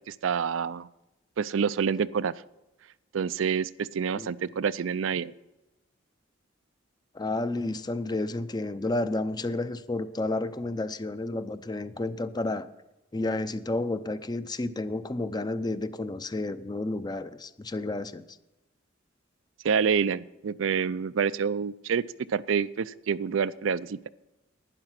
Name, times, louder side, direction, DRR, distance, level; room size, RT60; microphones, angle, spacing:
voice 1, 0.1-0.9 1.4-2.3 3.1-5.3 19.6-22.0 22.3-24.1, right 6 dB, 80° right, 16 dB, 0.4 m, -27 dB
voice 2, 7.1-12.7 13.1-18.4, left 2 dB, 20° left, 12 dB, 0.5 m, -31 dB
12.0 x 9.7 x 5.9 m, 0.97 s
head